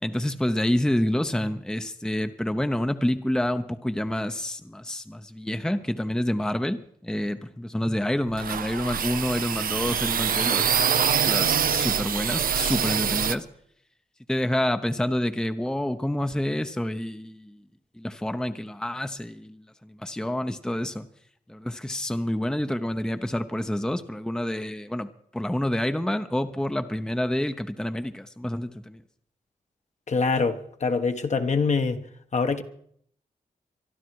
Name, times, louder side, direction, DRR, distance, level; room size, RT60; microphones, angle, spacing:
voice 1, 0.0-6.8 7.0-13.5 14.3-17.6 18.0-21.1 21.5-29.0, left 1 dB, 5° left, 0.8 m, -28 dB
sound 1, 8.3-13.3, right 8 dB, 75° right, 0.7 m, -25 dB
voice 2, 30.1-32.0 32.3-32.6, left 4 dB, 50° left, 1.3 m, -24 dB
24.0 x 12.0 x 4.7 m
cardioid pair, 80°, 15 cm